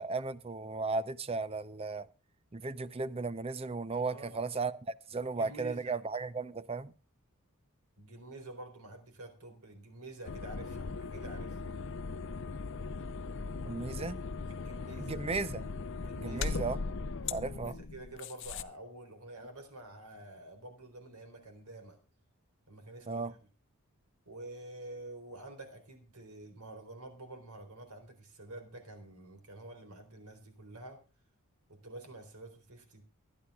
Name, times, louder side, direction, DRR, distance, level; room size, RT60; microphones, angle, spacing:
voice 1, 0.0-2.1 2.5-6.9 13.7-14.2 15.0-15.7 16.2-16.8 17.3-17.8 23.1-23.3, right 3 dB, 25° right, 0.6 m, -35 dB
voice 2, 4.0-4.4 5.2-5.9 8.0-11.7 14.5-15.2 16.0-16.6 17.4-22.0 22.7-23.5 24.3-31.0 31.7-33.0, right 2 dB, 80° right, 3.7 m, -48 dB
sound 1, 10.2-18.6, left 4 dB, 55° left, 0.6 m, -39 dB
24.0 x 10.0 x 2.3 m
head